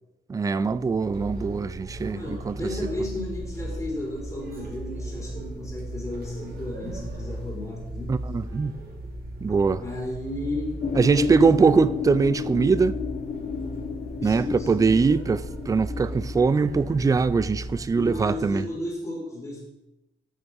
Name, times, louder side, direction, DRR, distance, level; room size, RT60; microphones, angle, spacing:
voice 1, 0.3-2.6 8.1-8.8 9.4-9.8 10.9-13.0 14.2-18.6, right 5 dB, 15° right, 0.3 m, -22 dB
sound 1, 0.6-18.8, right 1 dB, 50° right, 2.6 m, -37 dB
voice 2, 2.1-8.2 9.8-10.8 11.1-11.8 14.2-14.9 17.9-19.6, left 2 dB, 15° left, 3.4 m, -33 dB
sound 2, 10.8-17.0, left 7 dB, 35° left, 0.7 m, -33 dB
9.2 x 6.4 x 4.6 m
cardioid pair, 90°, 20 cm